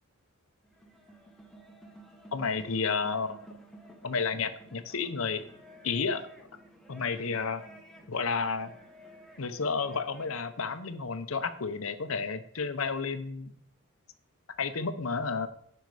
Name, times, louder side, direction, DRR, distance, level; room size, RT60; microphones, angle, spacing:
sound 1, 0.6-10.5, right 1 dB, ahead, 1.1 m, -53 dB
voice 1, 2.3-3.4 4.0-5.4 5.8-6.5 6.9-7.6 8.1-8.7 9.4-13.5 14.6-15.5, left 5 dB, 65° left, 10 dB, 0.8 m, -31 dB
10.5 x 5.7 x 4.9 m, 0.67 s
head